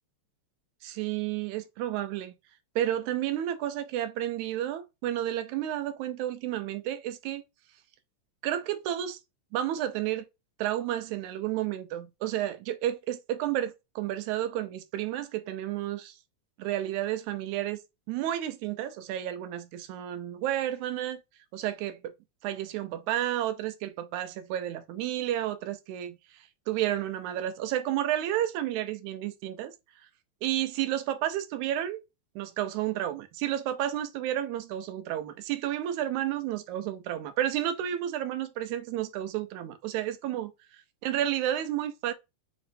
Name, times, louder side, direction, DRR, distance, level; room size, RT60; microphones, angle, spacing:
voice 1, 0.8-2.3 2.8-7.4 8.4-9.2 9.5-10.2 10.6-16.2 16.6-17.8 18.1-21.2 21.5-22.1 22.4-29.7 30.4-32.0 32.4-40.5 41.0-42.1, right 12 dB, 80° right, 1.9 m, -31 dB
6.0 x 3.0 x 2.6 m
omnidirectional pair, 3.5 m